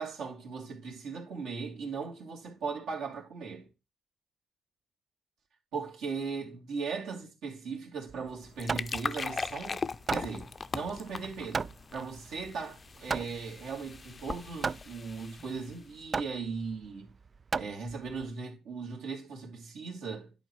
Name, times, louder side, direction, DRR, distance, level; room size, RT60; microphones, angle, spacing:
voice 1, 0.0-3.7 5.7-9.8 10.1-17.1 17.5-20.3, right 5 dB, 80° right, 2.7 m, -38 dB
Hammer, 8.1-18.3, right 5 dB, 35° right, 0.3 m, -37 dB
sound 1, 8.3-15.9, left 4 dB, 35° left, 0.4 m, -40 dB
10.5 x 4.2 x 4.6 m
cardioid pair, 90°, 0 cm